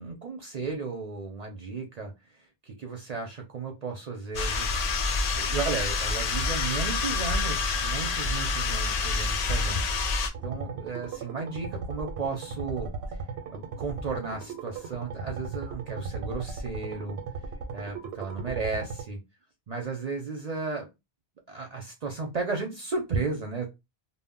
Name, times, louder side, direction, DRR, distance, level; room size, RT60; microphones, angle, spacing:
voice 1, 0.0-2.1 2.4-12.9 13.5-17.2 17.7-19.2 19.7-20.9 21.5-23.7, right 4 dB, 55° right, 2 dB, 0.5 m, -34 dB
sound 1, 4.3-10.3, left 4 dB, 55° left, 0.5 m, -27 dB
sound 2, 10.3-19.0, right 4 dB, 90° right, 0.9 m, -37 dB
2.1 x 2.0 x 3.5 m, 0.23 s
omnidirectional pair, 1.0 m